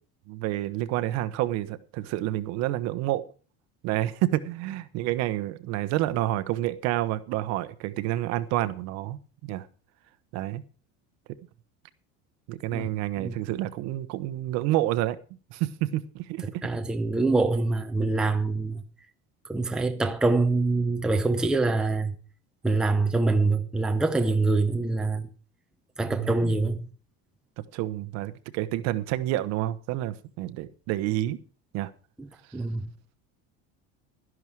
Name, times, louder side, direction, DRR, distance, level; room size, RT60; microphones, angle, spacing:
voice 1, 0.3-3.2 3.8-9.7 10.3-10.6 12.5-15.2 15.5-16.7 26.1-26.5 27.7-31.4 31.7-31.9, right 15 dB, 60° right, 1.1 m, -29 dB
voice 2, 16.4-18.8 19.5-22.1 22.6-25.3 26.0-26.9 32.2-32.3 32.5-32.9, right 3 dB, ahead, 0.7 m, -25 dB
12.5 x 11.0 x 4.7 m
cardioid pair, 175°, 30 cm